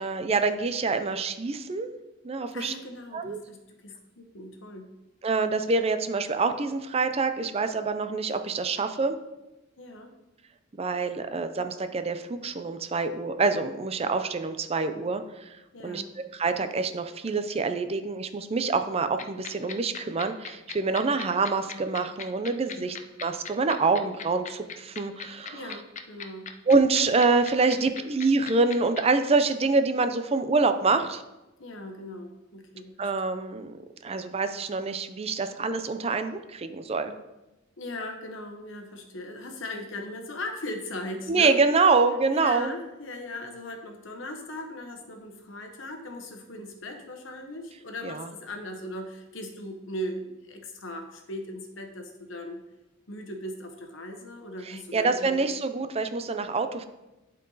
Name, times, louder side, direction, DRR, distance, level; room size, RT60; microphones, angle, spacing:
voice 1, 0.0-1.9 2.2-2.7 3.1-3.4 5.2-9.2 10.8-15.6 15.8-25.8 26.7-31.2 33.0-33.8 34.0-37.1 41.3-42.7 48.0-48.3 54.6-56.8, right 4 dB, 30° right, 9 dB, 0.5 m, -26 dB
voice 2, 2.5-4.9 9.8-10.1 15.7-16.1 22.7-22.9 25.5-26.5 27.6-28.1 31.6-33.1 37.8-41.6 42.3-52.6 53.1-55.5, left 1 dB, 75° left, 4 dB, 1.1 m, -39 dB
sound 1, 19.2-29.0, left 7 dB, 40° left, 0.6 m, -37 dB
11.5 x 4.5 x 4.0 m, 1.0 s
head